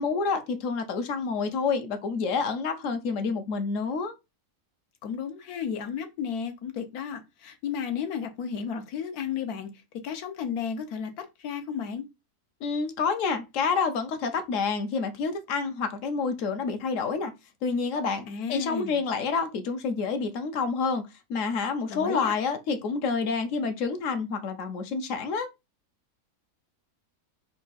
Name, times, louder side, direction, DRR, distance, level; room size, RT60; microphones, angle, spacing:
voice 1, 0.0-4.1 12.6-17.3 17.6-21.0 21.3-25.5, left 5 dB, 65° left, 0.9 m, -28 dB
voice 2, 5.0-9.7 10.0-12.1 18.3-19.0 21.9-22.3, left 7 dB, 85° left, 1.3 m, -33 dB
3.6 x 2.4 x 3.8 m
omnidirectional pair, 1.6 m